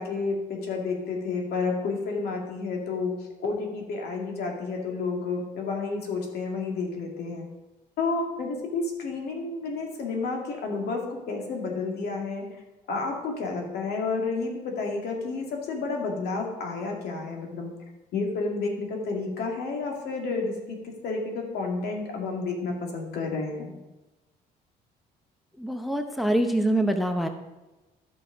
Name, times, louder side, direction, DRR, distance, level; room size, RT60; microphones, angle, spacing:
voice 1, 0.0-3.1 3.4-7.5 8.0-12.4 12.9-17.8 18.1-23.7, left 4 dB, 70° left, 1 dB, 2.3 m, -30 dB
voice 2, 25.6-27.3, right 1 dB, ahead, 6 dB, 0.7 m, -25 dB
12.0 x 6.3 x 5.1 m, 1.1 s
cardioid pair, 110°, 17 cm